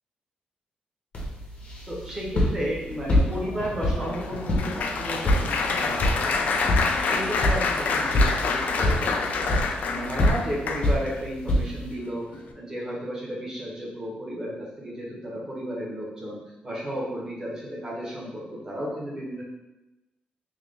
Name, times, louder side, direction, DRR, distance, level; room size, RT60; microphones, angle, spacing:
sound 1, 1.1-11.9, left 1 dB, 45° left, 1.1 m, -27 dB
voice 1, 1.9-6.7 7.0-9.6 9.9-19.4, equal, 25° right, -5 dB, 1.2 m, -33 dB
Applause, 2.9-11.2 11.8-12.1 12.3-12.5, left 4 dB, 65° left, 0.4 m, -28 dB
3.4 x 3.2 x 3.8 m, 1.0 s
wide cardioid pair, 150°, 3 cm